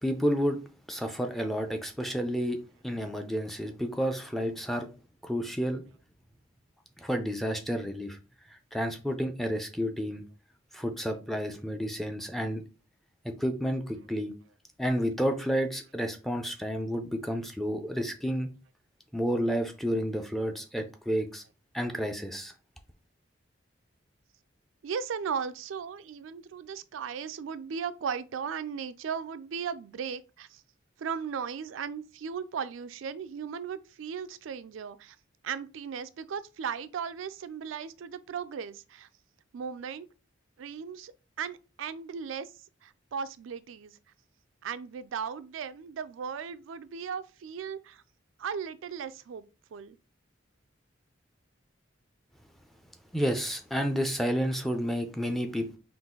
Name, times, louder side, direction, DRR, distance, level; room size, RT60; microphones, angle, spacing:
voice 1, 0.0-0.6 0.9-2.6 2.8-4.9 5.2-5.8 7.0-8.2 8.7-10.2 10.7-12.6 13.2-14.3 14.8-18.5 19.1-21.4 21.7-22.5 53.1-55.8, equal, ahead, 0.4 m, -30 dB
voice 2, 24.8-30.6 31.0-35.2 35.4-39.1 39.5-40.1 40.6-41.1 41.4-42.5 42.8-44.0 44.6-48.0 48.4-50.0, right 7 dB, 85° right, 0.4 m, -37 dB
3.9 x 2.5 x 3.7 m
head